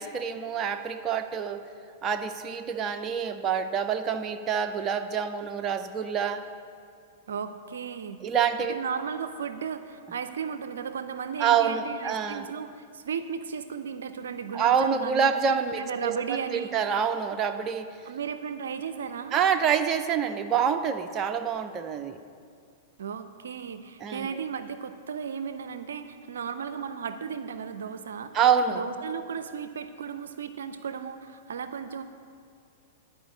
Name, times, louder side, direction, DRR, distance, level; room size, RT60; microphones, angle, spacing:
voice 1, 0.0-1.6 2.0-6.4 8.2-8.8 11.4-12.5 14.5-17.9 19.3-22.2 24.0-24.3 28.3-28.8, right 7 dB, 30° right, 7 dB, 0.6 m, -26 dB
voice 2, 7.3-8.2 8.6-15.3 15.7-16.7 18.1-19.4 23.0-28.3 28.7-32.0, right 7 dB, 75° right, 11 dB, 0.5 m, -35 dB
11.0 x 5.0 x 8.5 m, 2.3 s
hypercardioid pair, 105°, 0 cm